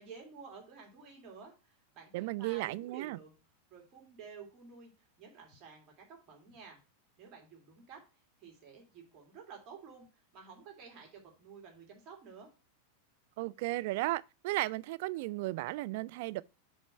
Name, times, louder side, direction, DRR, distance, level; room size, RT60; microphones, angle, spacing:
voice 1, 0.0-3.4 3.7-6.8 7.2-12.5, right 6 dB, 35° right, 2.1 m, -52 dB
voice 2, 2.1-3.2 13.4-16.4, right 19 dB, 50° right, 0.3 m, -35 dB
8.3 x 3.1 x 5.7 m
figure-of-eight pair, 90°, 0 cm